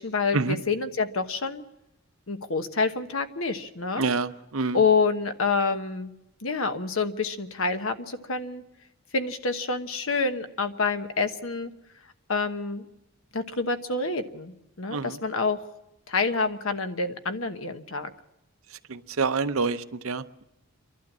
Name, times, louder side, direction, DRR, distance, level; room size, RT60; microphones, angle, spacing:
voice 1, 0.0-1.6 2.3-4.0 4.7-6.1 6.4-8.6 9.1-11.7 12.3-12.8 13.3-15.7 16.1-18.1, left 4 dB, 70° left, 8 dB, 1.1 m, -27 dB
voice 2, 4.0-4.8 14.9-15.2 18.9-20.4, right 4 dB, 70° right, 11 dB, 0.7 m, -27 dB
29.0 x 12.0 x 7.4 m, 0.92 s
head